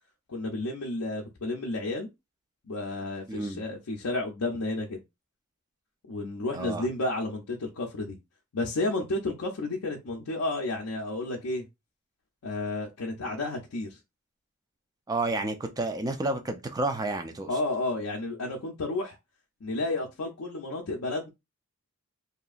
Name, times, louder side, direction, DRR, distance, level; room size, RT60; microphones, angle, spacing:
voice 1, 0.3-2.1 2.6-5.0 6.1-8.2 8.5-11.7 12.4-14.0 17.5-19.2 19.6-21.3, left 2 dB, 75° left, 0.5 m, -31 dB
voice 2, 3.3-3.6 6.5-6.9 15.1-17.5, right 2 dB, 15° right, 0.4 m, -30 dB
2.8 x 2.4 x 2.4 m
head